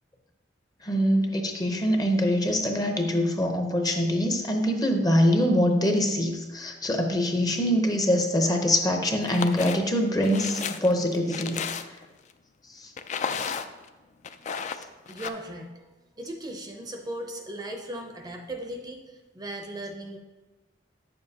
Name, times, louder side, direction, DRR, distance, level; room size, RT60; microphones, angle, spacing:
voice 1, 0.8-11.6 12.7-12.9, equal, 20° left, 4 dB, 0.7 m, -24 dB
sound 1, 9.2-9.8 10.2-12.1 13.0-13.9 14.2-15.3, left 6 dB, 40° left, 0.3 m, -33 dB
voice 2, 15.1-20.2, right 1 dB, 20° right, 3 dB, 0.6 m, -38 dB
9.0 x 7.0 x 2.8 m, 1.2 s
head